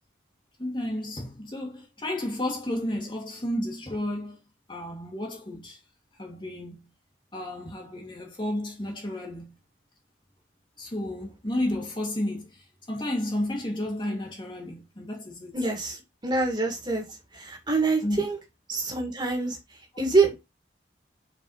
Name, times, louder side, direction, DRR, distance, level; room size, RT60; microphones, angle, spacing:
voice 1, 0.6-4.4 4.7-5.8 6.2-6.8 7.3-9.5 10.8-15.6 18.0-18.2, left 1 dB, 25° left, 1.6 m, -32 dB
voice 2, 15.5-17.0 17.3-18.4 18.7-19.6 20.0-20.5, right 3 dB, 25° right, 2.2 m, -25 dB
5.3 x 4.7 x 5.4 m
head